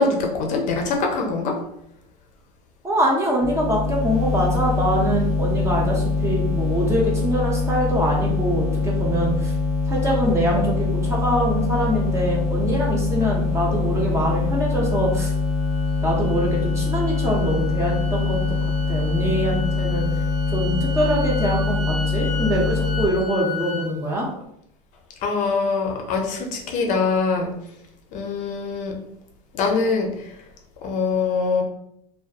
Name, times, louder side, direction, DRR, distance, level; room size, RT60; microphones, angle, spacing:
voice 1, 0.0-1.5 25.2-27.5 28.1-28.9 29.5-30.3 30.8-31.6, left 4 dB, 40° left, 2 dB, 0.5 m, -23 dB
voice 2, 2.8-9.5 9.9-15.3 16.0-18.4 18.9-20.0 20.5-24.3, right 1 dB, 15° right, -2 dB, 0.4 m, -23 dB
sound 1, 3.4-23.1, left 3 dB, 15° left, 1.0 m, -23 dB
sound 2, 14.7-23.9, left 3 dB, 50° right, 1.1 m, -36 dB
2.5 x 2.3 x 2.3 m, 0.75 s
supercardioid pair, 140°, 20 cm